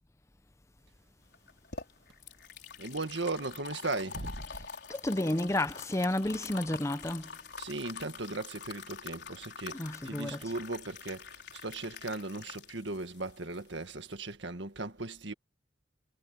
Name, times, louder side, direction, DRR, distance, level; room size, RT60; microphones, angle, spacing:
sound 1, 1.3-14.3, left 5 dB, 60° left, 5.0 m, -46 dB
voice 1, 2.8-4.5 7.6-15.3, right 2 dB, 65° right, 1.8 m, -37 dB
voice 2, 4.9-7.2 9.7-10.4, left 1 dB, 15° left, 0.7 m, -31 dB
head